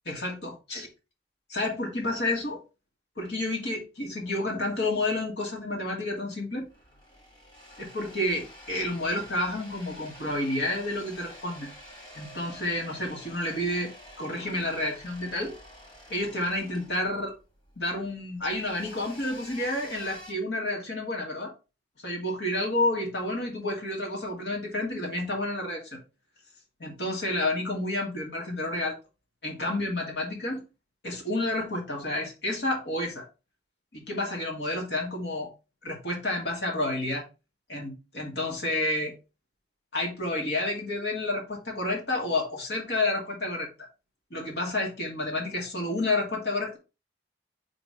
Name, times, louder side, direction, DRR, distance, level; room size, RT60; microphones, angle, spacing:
voice 1, 0.1-0.9 1.5-2.6 3.2-6.7 7.8-11.7 12.2-13.9 14.2-15.5 16.1-17.3 17.8-21.5 22.0-26.0 26.8-29.0 29.4-30.6 31.0-33.3 33.9-35.5 35.8-37.2 37.7-39.1 39.9-43.7 44.3-46.8, left 2 dB, 70° left, 0 dB, 2.2 m, -30 dB
sound 1, 6.6-20.3, equal, 25° left, 2.0 m, -49 dB
5.1 x 3.9 x 5.1 m, 0.30 s
head